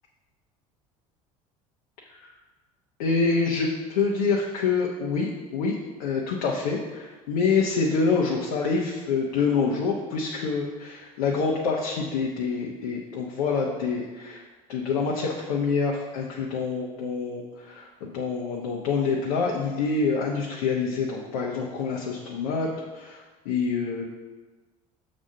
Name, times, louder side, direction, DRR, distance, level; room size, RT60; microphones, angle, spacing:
voice 1, 3.0-5.7 6.0-14.4 14.7-24.1, left 4 dB, 80° left, -2 dB, 0.9 m, -26 dB
6.1 x 4.2 x 6.4 m, 1.3 s
hypercardioid pair, 75°, 18 cm